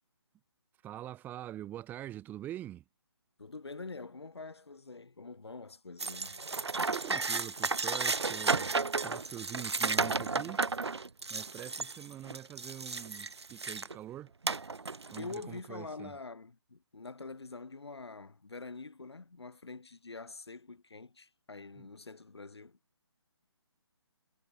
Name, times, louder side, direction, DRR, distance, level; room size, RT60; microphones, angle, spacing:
voice 1, 0.8-2.8 6.9-8.7 9.0-10.7 11.3-14.3 15.1-16.1 21.8-21.9, right 12 dB, 10° right, 5.6 m, -44 dB
voice 2, 3.4-6.4 15.2-22.8, left 3 dB, 65° left, 6.1 m, -45 dB
sound 1, 6.0-14.0 14.4-15.4, right 4 dB, 70° right, 1.0 m, -33 dB
figure-of-eight pair, 145°, 14 cm